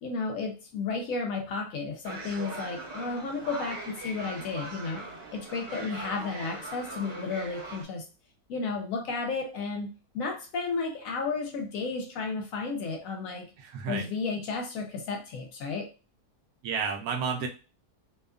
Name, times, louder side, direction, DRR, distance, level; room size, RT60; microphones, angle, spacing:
voice 1, 0.0-5.1 5.3-8.0 8.5-13.5 13.9-15.9, left 4 dB, 70° left, 4 dB, 0.9 m, -33 dB
sound 1, 2.0-7.8, right 2 dB, 50° right, 0.9 m, -40 dB
voice 2, 13.6-14.1 16.6-17.5, right 6 dB, 75° right, 2 dB, 1.0 m, -31 dB
2.7 x 2.3 x 2.3 m, 0.32 s
omnidirectional pair, 1.7 m